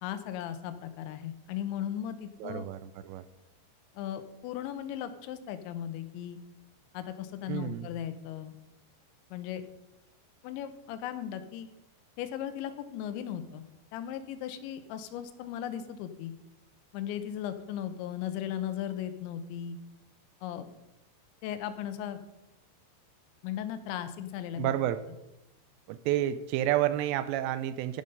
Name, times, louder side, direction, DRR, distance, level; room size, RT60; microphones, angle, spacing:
voice 1, 0.0-2.7 3.9-6.4 6.9-8.6 9.3-9.6 10.4-11.7 12.2-13.6 13.9-16.3 16.9-19.8 20.4-20.7 21.4-22.2 23.4-24.7, left 10 dB, 85° left, 9 dB, 3.1 m, -37 dB
voice 2, 2.4-3.2 7.5-7.9 24.6-25.0 25.9-28.0, right 12 dB, 85° right, 12 dB, 2.6 m, -30 dB
15.5 x 5.6 x 5.3 m, 0.93 s
omnidirectional pair, 5.2 m